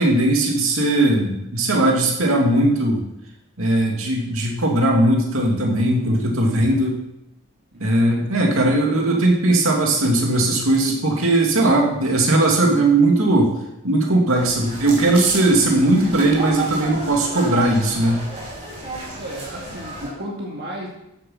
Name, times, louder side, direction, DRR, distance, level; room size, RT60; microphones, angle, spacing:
voice 1, 0.0-3.0 3.6-7.0 7.8-13.5 13.8-18.2, right 1 dB, 75° right, 0 dB, 2.5 m, -18 dB
voice 2, 7.7-8.1 19.2-20.9, right 1 dB, 45° right, -2 dB, 2.1 m, -34 dB
sound 1, 14.3-20.1, right 2 dB, 30° right, 5.4 m, -32 dB
13.0 x 7.8 x 5.8 m, 0.84 s
head